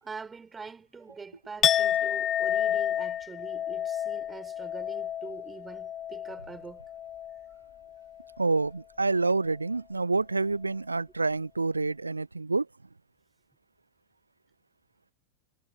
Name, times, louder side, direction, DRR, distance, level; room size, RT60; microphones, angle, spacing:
voice 1, 0.0-6.8, right 5 dB, 15° right, 4.2 m, -44 dB
Chink clink, 1.6-7.6 7.9-8.3, left 10 dB, 25° left, 0.4 m, -30 dB
voice 2, 8.4-12.7, right 3 dB, 80° right, 0.3 m, -27 dB
figure-of-eight pair, 90°, 0 cm